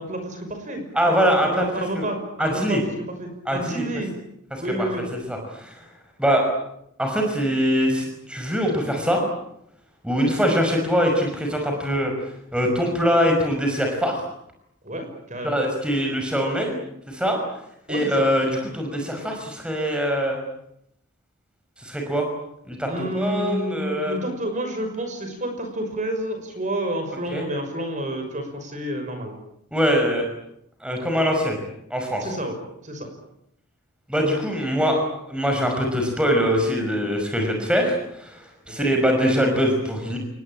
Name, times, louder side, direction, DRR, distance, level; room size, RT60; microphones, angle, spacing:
voice 1, 0.0-1.2 1.4-2.8 3.2-4.1 4.6-5.0 10.2-10.3 14.8-15.6 17.9-18.1 22.9-29.3 32.2-32.6 32.8-33.1 38.8-38.9, right 1 dB, 35° right, 6 dB, 5.9 m, -29 dB
voice 2, 0.9-1.7 1.9-2.1 2.4-2.8 3.5-3.8 4.5-4.9 5.3-5.8 6.2-6.5 7.0-9.2 10.0-12.1 12.5-14.2 15.4-16.8 17.1-17.4 17.9-20.4 21.8-22.3 22.7-24.2 27.3-27.4 29.7-30.3 30.8-31.6 31.9-32.2 34.1-35.0 35.3-40.2, equal, 5° right, 2 dB, 5.8 m, -23 dB
28.5 x 20.0 x 8.9 m, 0.77 s
head